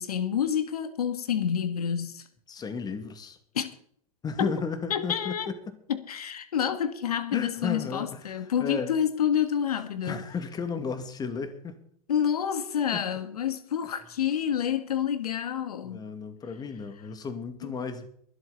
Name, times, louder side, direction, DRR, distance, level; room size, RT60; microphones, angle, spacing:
voice 1, 0.0-2.3 3.5-3.7 4.4-4.6 4.9-5.5 5.9-10.2 12.1-16.0 17.6-17.7, left 8 dB, 80° left, 1.5 m, -28 dB
voice 2, 2.5-3.4 4.2-5.8 7.3-8.9 10.0-11.8 12.9-13.0 15.8-18.1, left 5 dB, 20° left, 2.2 m, -34 dB
24.0 x 8.1 x 4.1 m
hypercardioid pair, 115°, 19 cm